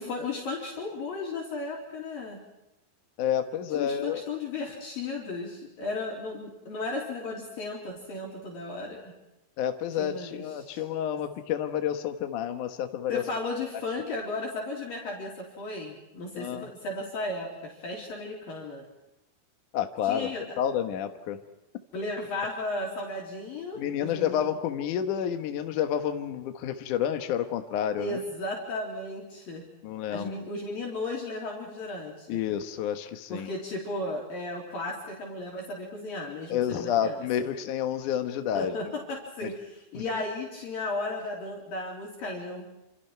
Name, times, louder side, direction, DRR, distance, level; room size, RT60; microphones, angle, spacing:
voice 1, 0.0-2.4 3.7-9.1 10.0-10.8 13.1-18.8 20.0-20.6 21.9-24.4 28.0-29.7 30.1-32.4 33.3-37.5 38.5-42.7, left 2 dB, 50° left, -3 dB, 4.8 m, -35 dB
voice 2, 3.2-4.2 9.6-13.2 16.3-16.7 19.7-20.3 20.6-21.4 23.8-28.2 29.8-30.3 32.3-33.5 36.5-38.7 39.9-40.0, left 9 dB, 75° left, 6 dB, 1.8 m, -29 dB
28.0 x 27.5 x 4.6 m, 0.91 s
omnidirectional pair, 5.7 m